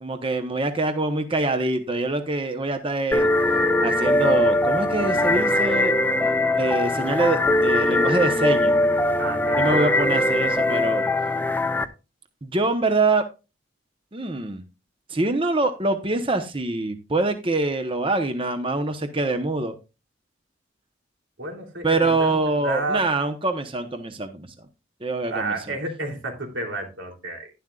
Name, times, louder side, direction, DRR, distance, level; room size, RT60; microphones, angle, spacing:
voice 1, 0.0-3.3 3.8-5.9 6.6-8.7 9.5-11.0 12.4-13.2 14.1-14.6 15.1-19.7 21.8-24.5 25.0-25.7, right 2 dB, 30° right, 7 dB, 0.9 m, -24 dB
sound 1, 3.1-11.9, left 1 dB, 10° left, 0.6 m, -21 dB
voice 2, 9.2-9.9 21.4-23.0 25.3-27.5, right 2 dB, 90° right, 2 dB, 3.1 m, -31 dB
11.5 x 11.0 x 2.4 m, 0.28 s
head